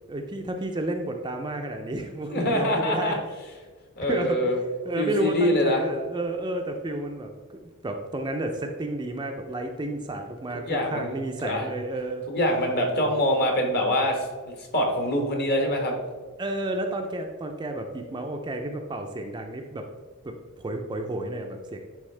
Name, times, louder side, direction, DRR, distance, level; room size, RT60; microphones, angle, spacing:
voice 1, 0.1-3.2 4.1-4.4 4.8-7.3 7.8-12.2 12.8-13.2 16.4-19.8 20.2-21.8, right 1 dB, 20° right, 4 dB, 0.4 m, -31 dB
voice 2, 2.3-3.2 4.0-4.6 5.0-5.9 10.6-11.2 11.4-11.7 12.3-14.3 14.6-15.9, left 1 dB, 45° left, 2 dB, 1.3 m, -24 dB
9.8 x 3.5 x 3.3 m, 1.5 s
head